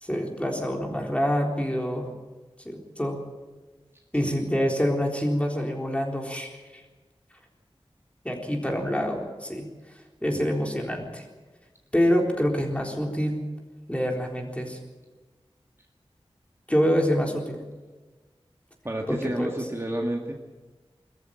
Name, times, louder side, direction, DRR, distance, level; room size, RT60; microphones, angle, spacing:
voice 1, 0.0-2.1 2.7-3.2 4.1-6.8 8.2-9.7 10.2-11.2 11.9-13.4 13.9-14.8 16.7-17.6 19.1-19.5, equal, 10° left, 0 dB, 3.9 m, -26 dB
voice 2, 18.8-20.3, right 1 dB, 25° right, 1 dB, 2.0 m, -30 dB
22.0 x 14.0 x 9.1 m, 1.3 s
wide cardioid pair, 65°, 11 cm